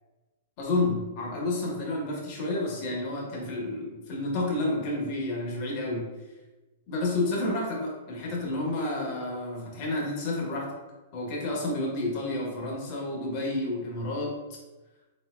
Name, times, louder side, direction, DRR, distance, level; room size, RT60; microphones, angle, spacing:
voice 1, 0.6-6.1 6.9-10.7 11.1-14.6, left 2 dB, 50° left, -2 dB, 1.3 m, -30 dB
4.2 x 3.9 x 2.5 m, 1.1 s
hypercardioid pair, 125°, 0 cm